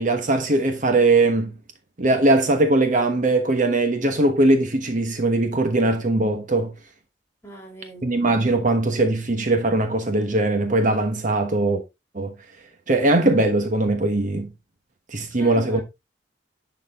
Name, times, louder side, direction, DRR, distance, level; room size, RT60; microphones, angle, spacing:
voice 1, 0.0-1.6 2.0-6.7 8.0-11.8 12.1-12.3 12.9-14.5 15.1-15.8, right 2 dB, 45° right, 1.2 m, -20 dB
voice 2, 7.4-8.2 15.4-15.8, right 1 dB, 15° left, 3.0 m, -39 dB
11.0 x 4.2 x 3.6 m
head